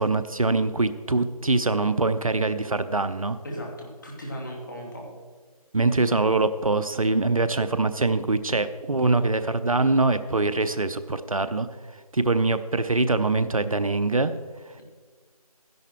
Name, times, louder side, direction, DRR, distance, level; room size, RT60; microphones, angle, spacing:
voice 1, 0.0-3.4 5.7-11.7 12.1-14.3, right 3 dB, 60° right, 12 dB, 0.7 m, -23 dB
voice 2, 3.4-5.2, equal, 30° left, -1 dB, 2.2 m, -36 dB
13.0 x 10.5 x 4.4 m, 1.5 s
figure-of-eight pair, 165°, 20 cm